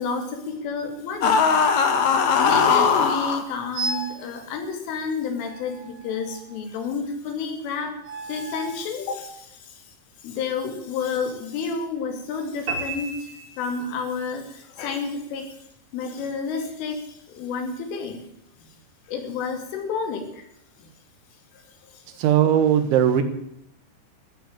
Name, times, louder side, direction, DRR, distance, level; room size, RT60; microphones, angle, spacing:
voice 1, 0.0-1.6 2.4-15.7 15.9-18.3 18.6-18.7 19.1-20.5 20.8-20.9 21.5-22.0, left 5 dB, 85° left, 5 dB, 5.1 m, -30 dB
sound 1, 1.2-3.4, left 6 dB, 60° left, 1.9 m, -19 dB
sound 2, 3.7-4.2 5.4-6.6 8.0-8.8, right 3 dB, 55° right, 4.9 m, -34 dB
sound 3, 12.7-14.2, right 3 dB, 30° right, 4.0 m, -33 dB
voice 2, 22.1-23.2, right 9 dB, 80° right, 9 dB, 3.8 m, -19 dB
14.0 x 10.0 x 8.9 m, 0.76 s
omnidirectional pair, 5.5 m